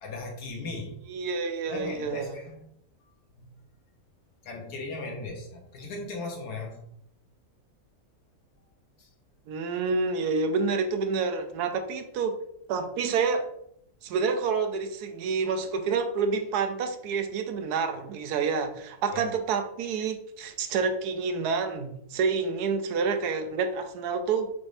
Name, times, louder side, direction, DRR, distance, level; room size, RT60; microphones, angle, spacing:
voice 1, 0.0-0.9 1.7-2.6 3.4-3.5 4.4-6.8 9.0-9.1 11.7-11.8 19.1-19.2, left 3 dB, 90° left, 1 dB, 1.5 m, -37 dB
voice 2, 1.1-2.3 9.5-12.4 12.7-13.4 14.0-24.5, right 5 dB, 90° right, 7 dB, 1.1 m, -28 dB
5.1 x 3.3 x 2.6 m, 0.75 s
omnidirectional pair, 1.6 m